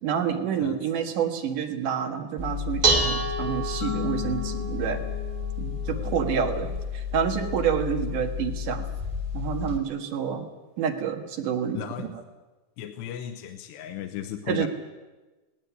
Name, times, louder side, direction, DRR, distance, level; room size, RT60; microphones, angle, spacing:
voice 1, 0.0-5.0 5.6-8.9 9.3-10.5 10.8-12.1 14.5-14.7, right 8 dB, 60° right, 4 dB, 2.9 m, -28 dB
Dishes pots and pans, 2.4-9.8, left 1 dB, 20° right, 1.4 m, -29 dB
sound 1, 3.8-6.5, left 14 dB, 65° left, 7.9 m, -37 dB
voice 2, 5.9-6.2 11.7-12.1 12.8-14.7, left 10 dB, 85° left, 5 dB, 3.1 m, -36 dB
19.0 x 18.0 x 9.5 m, 1.2 s
omnidirectional pair, 4.9 m